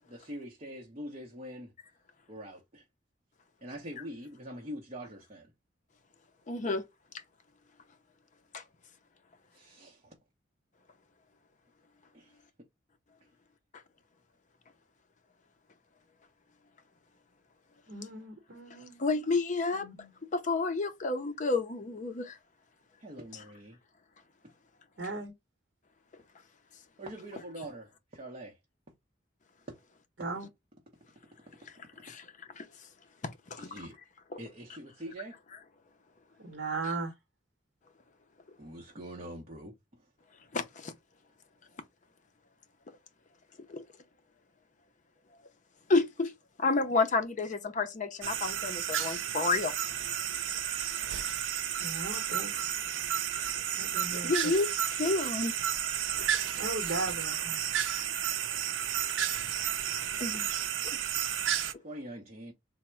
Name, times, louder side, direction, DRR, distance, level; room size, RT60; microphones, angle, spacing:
voice 1, 0.0-1.7 2.3-2.8 3.6-5.5 9.5-10.2 12.1-12.4 23.0-23.8 27.0-28.6 33.6-34.0 34.4-35.4 38.6-40.1 59.8-60.0 61.8-62.5, right 1 dB, 35° right, 0.7 m, -44 dB
voice 2, 6.5-6.8 8.5-8.6 19.0-19.9 20.3-22.4 32.0-32.2 32.6-32.7 33.5-33.7 36.8-36.9 40.5-40.9 43.7-43.8 45.9-46.3 46.6-49.7 54.1-55.5 56.2-56.3 60.2-60.5, left 3 dB, 40° left, 0.5 m, -30 dB
voice 3, 17.9-19.2 19.7-20.1 25.0-25.3 30.2-30.5 36.4-37.1 51.8-52.5 53.7-54.3 56.6-57.6, right 3 dB, 70° right, 0.9 m, -37 dB
sound 1, 48.2-61.7, right 10 dB, 90° right, 0.4 m, -32 dB
3.4 x 2.0 x 4.3 m
head